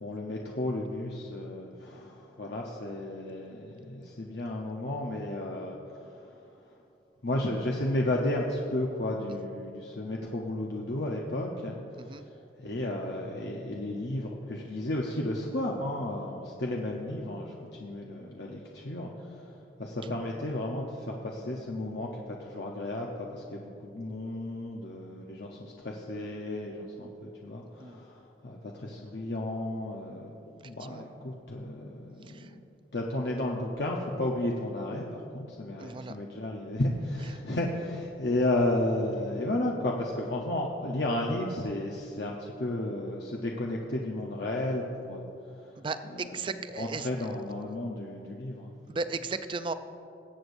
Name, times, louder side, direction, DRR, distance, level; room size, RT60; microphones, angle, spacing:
voice 1, 0.0-6.4 7.2-19.5 19.8-32.6 32.9-45.3 45.6-45.8 46.0-48.7, left 1 dB, 70° left, -1 dB, 0.8 m, -33 dB
voice 2, 35.8-36.2 45.8-47.1 48.9-49.7, right 4 dB, 30° right, 10 dB, 0.4 m, -35 dB
20.5 x 8.1 x 2.6 m, 2.7 s
head